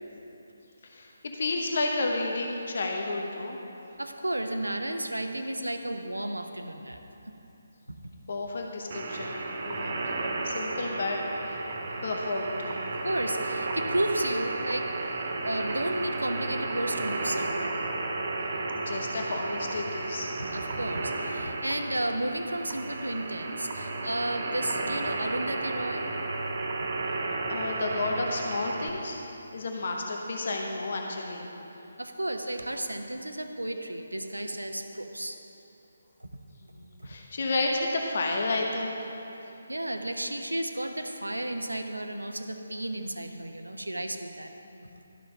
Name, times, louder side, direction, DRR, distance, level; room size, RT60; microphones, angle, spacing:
voice 1, 0.8-3.6 8.3-11.6 12.0-12.8 18.7-20.3 27.5-29.2 29.5-31.5 36.6-39.1 44.7-44.9, left 2 dB, 50° left, 1 dB, 0.9 m, -31 dB
voice 2, 4.0-7.0 7.9-8.0 13.0-17.7 20.4-26.1 32.0-35.4 36.2-36.3 37.0-37.2 39.7-44.5, right 1 dB, 80° right, 6 dB, 0.8 m, -33 dB
sound 1, 8.9-28.9, right 2 dB, 40° right, 1.0 m, -33 dB
12.5 x 5.9 x 5.3 m, 3.0 s
figure-of-eight pair, 145°, 0 cm